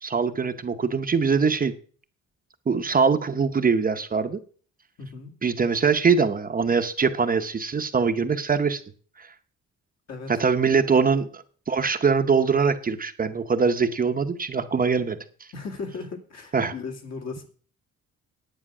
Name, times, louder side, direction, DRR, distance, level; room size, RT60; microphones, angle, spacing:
voice 1, 0.0-1.7 2.7-4.4 5.4-8.8 9.2-9.3 10.3-15.2 16.5-16.7, right 5 dB, 30° right, 8 dB, 0.8 m, -23 dB
voice 2, 5.0-5.3 10.1-10.4 15.5-17.5, left 4 dB, 60° left, 2 dB, 2.4 m, -36 dB
10.0 x 9.0 x 6.0 m, 0.43 s
cardioid pair, 145°, 30 cm